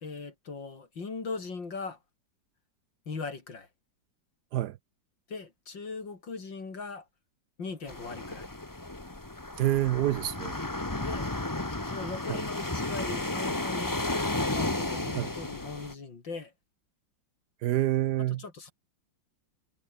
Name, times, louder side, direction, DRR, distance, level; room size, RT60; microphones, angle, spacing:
voice 1, 0.0-2.0 3.1-3.7 5.3-7.1 7.6-8.5 11.0-11.3 11.9-16.5 18.4-18.7, left 4 dB, 75° left, 4.3 m, -39 dB
sound 1, 7.9-15.9, left 2 dB, 10° left, 1.3 m, -33 dB
voice 2, 9.6-10.6 12.3-12.4 15.1-15.3 17.6-18.4, right 13 dB, 70° right, 1.1 m, -27 dB
omnidirectional pair, 2.1 m